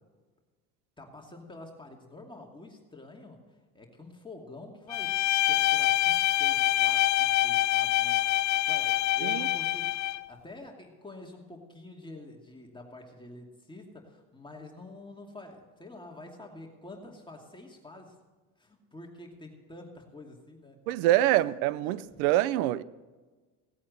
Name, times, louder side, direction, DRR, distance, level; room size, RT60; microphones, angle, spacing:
voice 1, 1.0-3.4 3.7-18.2 18.6-20.8 21.4-21.5 21.8-22.2, left 2 dB, 10° left, 2.4 m, -47 dB
Bowed string instrument, 4.9-10.3, left 15 dB, 45° left, 0.5 m, -25 dB
voice 2, 20.9-22.8, right 14 dB, 85° right, 0.7 m, -25 dB
17.5 x 8.5 x 6.6 m
supercardioid pair, 90°, 42 cm